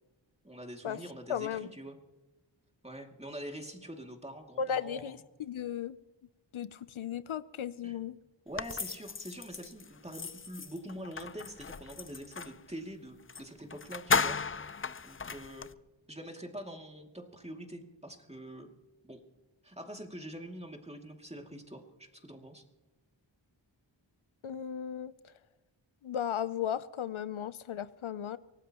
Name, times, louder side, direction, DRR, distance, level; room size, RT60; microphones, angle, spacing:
voice 1, 0.4-2.0 2.8-5.2 7.8-8.0 8.5-14.4 15.0-15.7 16.1-18.7 19.0-19.2 19.6-22.6, right 1 dB, 15° right, 2.4 m, -45 dB
voice 2, 1.3-1.7 4.6-6.0 6.5-8.1 24.4-25.1 26.0-28.4, left 8 dB, 85° left, 0.6 m, -35 dB
sound 1, 8.6-12.6 13.3-13.4 13.7-15.7, left 5 dB, 30° left, 0.5 m, -35 dB
24.5 x 18.0 x 3.0 m
wide cardioid pair, 60°, 47 cm